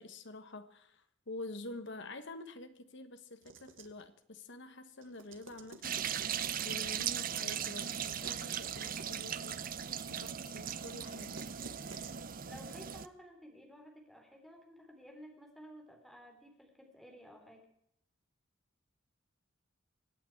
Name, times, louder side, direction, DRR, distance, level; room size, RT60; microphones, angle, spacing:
voice 1, 0.0-6.4 6.6-9.6 10.1-11.5, left 2 dB, 65° left, 1.4 m, -48 dB
sound 1, 3.4-4.0 5.0-6.9 7.8-9.3 11.1-12.2, right 5 dB, 70° right, 1.5 m, -53 dB
sound 2, 5.8-13.1, right 9 dB, 45° right, 0.7 m, -38 dB
voice 2, 12.4-17.7, equal, ahead, 3.5 m, -54 dB
25.0 x 8.9 x 4.7 m
head